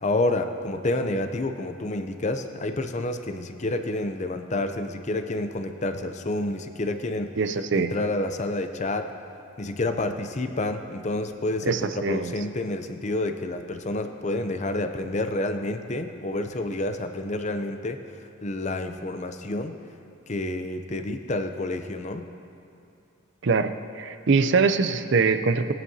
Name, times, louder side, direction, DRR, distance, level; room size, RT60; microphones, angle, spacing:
voice 1, 0.0-7.3 7.7-9.1 9.6-19.7 20.3-22.3, left 2 dB, 35° left, 7 dB, 0.6 m, -29 dB
voice 2, 7.4-7.9 11.7-12.3 23.4-25.7, right 4 dB, 55° right, 10 dB, 0.5 m, -23 dB
20.0 x 11.0 x 2.8 m, 2.7 s
head